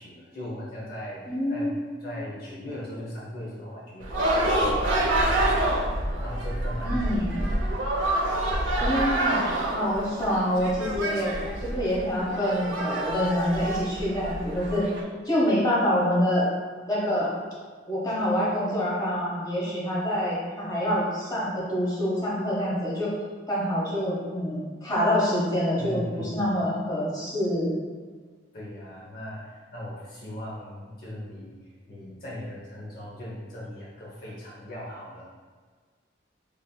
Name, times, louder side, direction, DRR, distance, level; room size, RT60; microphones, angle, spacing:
voice 1, 0.0-1.7 2.0-7.3 25.8-26.5 28.5-35.2, left 1 dB, 50° left, -6 dB, 0.7 m, -39 dB
voice 2, 1.2-2.1 6.8-7.3 8.8-9.4 9.7-11.4 11.7-14.9 15.2-16.5 16.9-17.3 17.9-23.1 23.5-27.8, equal, 20° left, -7 dB, 0.9 m, -26 dB
sound 1, 4.0-15.0, right 1 dB, 90° right, 0.5 m, -27 dB
5.1 x 2.6 x 2.3 m, 1.6 s
head